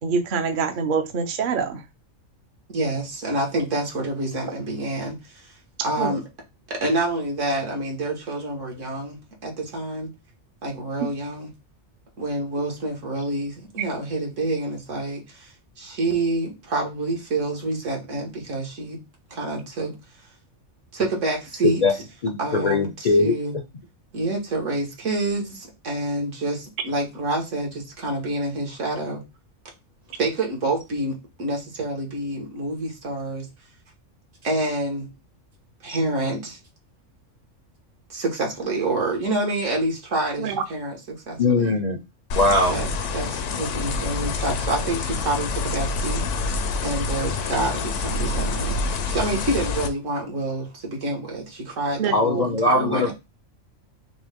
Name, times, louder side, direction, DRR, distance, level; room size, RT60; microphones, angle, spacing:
voice 1, 0.0-1.8 6.0-6.2 40.4-40.6 52.0-52.1, right 5 dB, 50° right, 6 dB, 0.7 m, -25 dB
voice 2, 2.7-5.5 5.8-6.2 6.7-10.1 10.6-11.5 12.2-19.0 19.3-19.9 20.9-21.8 22.4-22.9 23.2-23.5 24.1-29.2 30.2-33.5 34.4-35.1 35.8-36.6 38.1-40.9 41.3-41.8 42.7-42.9 43.1-46.5 46.8-53.1, right 2 dB, 75° right, 0 dB, 1.7 m, -27 dB
voice 3, 21.6-21.9 22.2-23.3 35.9-36.0 41.4-42.0 42.3-42.8 52.1-53.1, left 2 dB, 50° left, 5 dB, 0.5 m, -20 dB
sound 1, 42.3-49.9, left 3 dB, 70° left, 0.9 m, -27 dB
6.1 x 2.2 x 3.5 m, 0.24 s
omnidirectional pair, 1.3 m